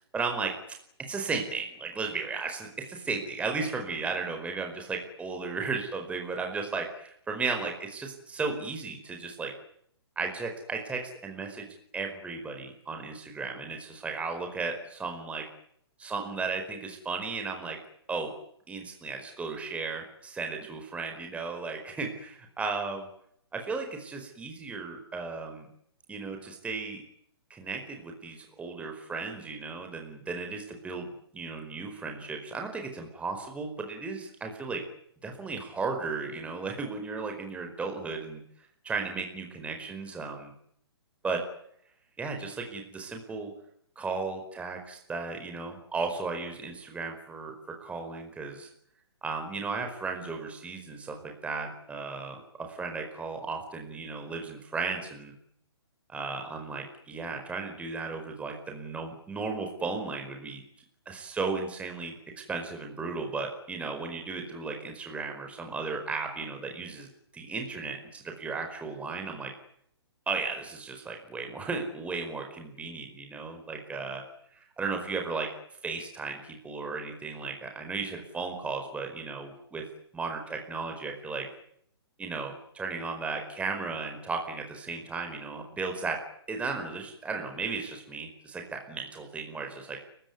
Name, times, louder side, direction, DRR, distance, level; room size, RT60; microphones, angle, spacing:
voice 1, 0.1-0.5 1.1-9.5 10.1-11.7 11.9-15.5 16.0-17.8 18.1-18.3 18.7-23.1 23.5-25.7 26.1-27.0 27.5-34.8 35.2-38.4 38.8-40.5 41.2-41.4 42.2-43.5 43.9-47.5 47.8-48.7 49.2-55.3 56.1-60.6 61.0-62.2 62.5-67.1 67.3-69.5 70.3-74.2 74.5-75.5 75.8-79.8 80.1-81.5 82.2-86.2 86.5-90.0, right 4 dB, 10° right, 4 dB, 4.8 m, -35 dB
30.0 x 17.0 x 9.7 m, 0.69 s
hypercardioid pair, 140°, 14 cm